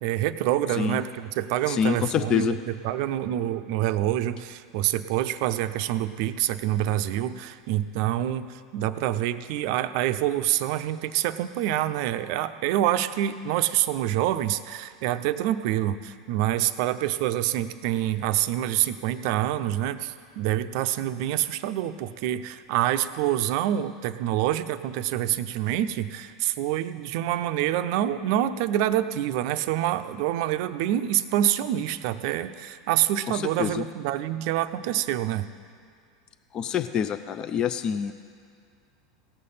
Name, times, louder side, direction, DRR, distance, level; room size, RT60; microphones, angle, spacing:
voice 1, 0.0-35.5, right 12 dB, 60° right, 11 dB, 0.5 m, -26 dB
voice 2, 1.7-2.6 33.3-33.8 36.5-38.1, left 8 dB, 35° left, 10 dB, 0.5 m, -26 dB
17.5 x 6.7 x 5.6 m, 2.2 s
hypercardioid pair, 90°, 2 cm